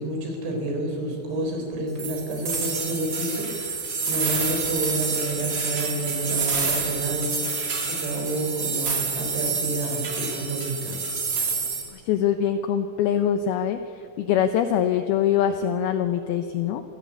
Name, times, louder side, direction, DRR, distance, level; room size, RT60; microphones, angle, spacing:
voice 1, 0.0-11.0, right 1 dB, 70° right, 2 dB, 6.2 m, -29 dB
sound 1, 2.0-11.8, right 4 dB, 35° right, 3.2 m, -28 dB
voice 2, 11.9-13.8 14.2-16.8, left 9 dB, 85° left, 9 dB, 2.2 m, -23 dB
25.5 x 16.5 x 8.4 m, 2.9 s
omnidirectional pair, 5.4 m